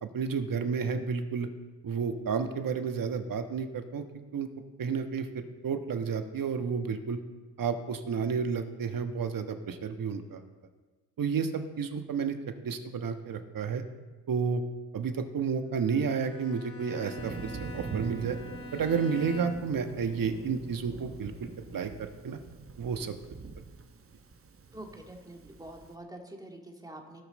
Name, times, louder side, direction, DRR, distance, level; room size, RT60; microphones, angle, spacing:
voice 1, 0.0-1.5 1.8-4.0 4.3-4.5 4.8-7.2 7.6-10.4 11.2-12.4 12.6-13.8 14.3-14.6 14.9-18.4 18.7-22.4 22.8-23.2, right 6 dB, 50° right, 7 dB, 1.4 m, -31 dB
Bowed string instrument, 15.8-19.9, left 2 dB, 30° left, 1.5 m, -45 dB
Thunder, 17.2-25.9, right 4 dB, 30° right, 1.2 m, -43 dB
voice 2, 24.7-27.2, right 1 dB, 10° right, 1 dB, 2.3 m, -46 dB
17.5 x 5.9 x 4.3 m, 1.3 s
supercardioid pair, 60°, 42 cm